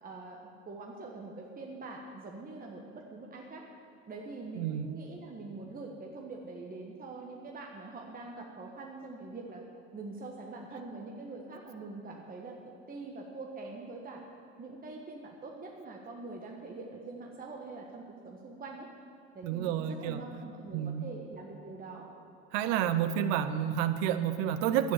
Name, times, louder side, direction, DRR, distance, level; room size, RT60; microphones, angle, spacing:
voice 1, 0.0-3.6 4.1-9.6 9.9-12.6 12.9-14.2 14.6-18.9 19.3-22.1, right 3 dB, 25° right, 0 dB, 1.5 m, -44 dB
voice 2, 4.6-5.0 19.4-20.2 20.7-21.1 22.5-24.9, right 10 dB, 60° right, 11 dB, 0.8 m, -30 dB
11.5 x 9.6 x 7.1 m, 2.7 s
hypercardioid pair, 75°, 36 cm